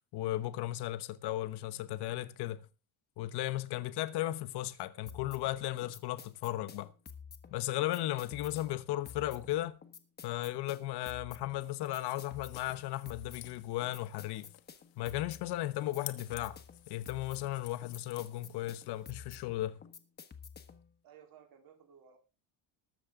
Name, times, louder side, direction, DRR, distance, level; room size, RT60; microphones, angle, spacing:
voice 1, 0.1-2.7 3.2-6.9 7.5-9.8 10.2-14.5 15.0-16.6 16.9-19.8, left 15 dB, 55° left, 1.1 m, -36 dB
sound 1, 5.1-20.9, left 6 dB, 20° left, 1.3 m, -51 dB
sound 2, 11.6-19.1, left 17 dB, 85° left, 1.5 m, -53 dB
voice 2, 21.0-22.2, right 8 dB, 45° right, 2.9 m, -57 dB
20.0 x 7.4 x 3.7 m
cardioid pair, 155°, 46 cm